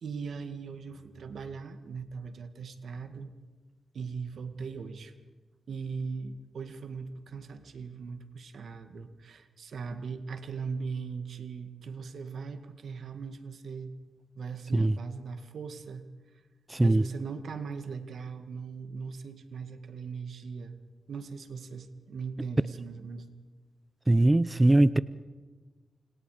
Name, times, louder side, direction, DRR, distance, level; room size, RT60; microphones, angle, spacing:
voice 1, 0.0-3.3 3.9-5.1 5.7-13.9 14.4-16.0 16.8-20.8 21.1-23.3, right 5 dB, 75° right, 8 dB, 2.0 m, -39 dB
voice 2, 16.7-17.0 24.1-25.0, right 2 dB, 20° right, 16 dB, 0.7 m, -21 dB
28.5 x 27.0 x 5.1 m, 1.3 s
cardioid pair, 60°, 0 cm